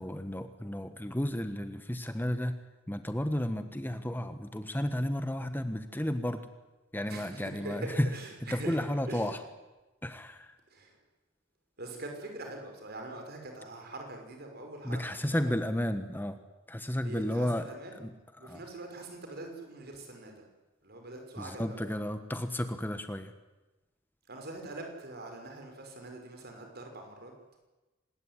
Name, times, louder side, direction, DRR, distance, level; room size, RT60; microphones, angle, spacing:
voice 1, 0.0-2.6 2.9-6.4 6.9-8.1 8.5-9.4 10.0-10.6 14.8-16.4 16.7-17.7 18.0-18.6 21.4-23.3, left 1 dB, 10° left, 9 dB, 1.3 m, -33 dB
voice 2, 7.1-8.8 9.0-9.3 10.7-11.0 11.8-15.5 17.0-18.0 18.4-20.4 20.8-21.9 24.3-27.3, right 2 dB, 55° right, 3 dB, 6.0 m, -43 dB
26.0 x 20.5 x 9.9 m, 1.1 s
head